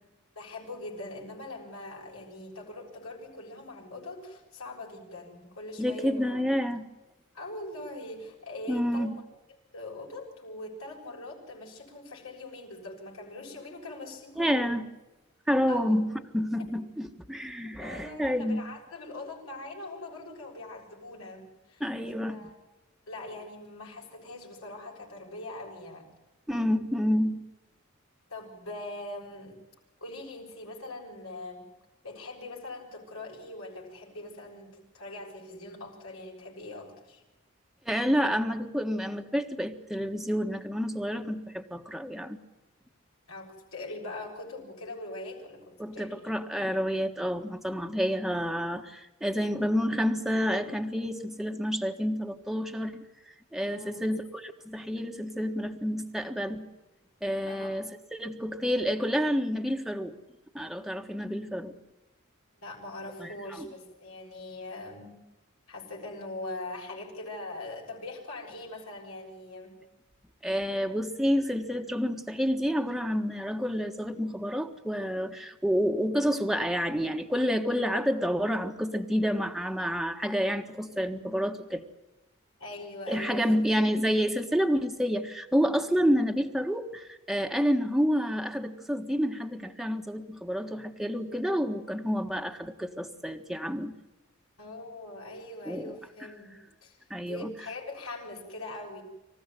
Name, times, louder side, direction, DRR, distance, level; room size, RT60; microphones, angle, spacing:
voice 1, 0.3-6.5 7.3-9.1 9.7-14.7 15.7-15.9 17.8-21.8 22.3-22.5 23.1-26.1 28.3-29.6 30.0-31.6 32.0-37.2 43.3-46.4 53.7-54.0 57.5-57.8 62.6-65.1 65.7-69.7 82.6-83.5 94.6-99.0, left 2 dB, 80° left, -1 dB, 6.9 m, -42 dB
voice 2, 5.8-6.9 8.7-9.2 14.4-14.8 15.5-18.6 21.8-22.5 26.5-27.4 37.8-42.4 45.8-53.0 53.5-56.7 57.2-60.1 60.5-61.7 63.2-63.7 70.4-81.8 83.1-93.9 95.6-96.3 97.1-97.5, equal, ahead, 4 dB, 1.4 m, -29 dB
26.5 x 15.5 x 9.7 m, 1.0 s
head